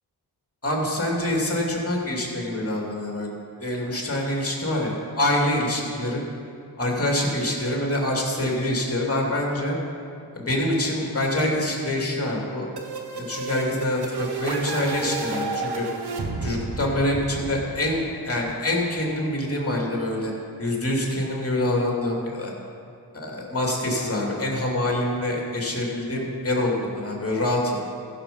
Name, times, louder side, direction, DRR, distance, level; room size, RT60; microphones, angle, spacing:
voice 1, 0.6-3.3 3.6-6.2 6.8-9.8 10.3-12.7 13.1-15.8 16.4-20.3 20.6-22.5 23.1-27.8, left 1 dB, 35° left, -2 dB, 2.8 m, -25 dB
sound 1, 12.8-18.4, right 3 dB, 65° right, 1.3 m, -31 dB
15.0 x 6.9 x 5.5 m, 2.5 s
cardioid pair, 60°, 42 cm